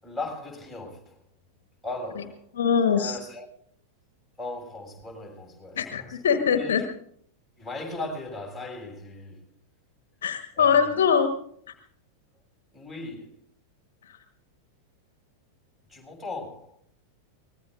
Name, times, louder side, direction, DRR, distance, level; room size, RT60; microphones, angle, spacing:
voice 1, 0.0-1.2 1.8-2.4 2.9-3.5 4.4-6.2 6.5-6.9 7.6-9.4 10.6-11.0 12.7-13.4 15.9-16.8, left 2 dB, 5° left, 7.1 m, -37 dB
voice 2, 2.6-3.2 5.8-6.8 10.2-11.3 14.1-14.2, left 7 dB, 60° left, 1.4 m, -22 dB
24.0 x 20.5 x 2.6 m
figure-of-eight pair, 90°, 0 cm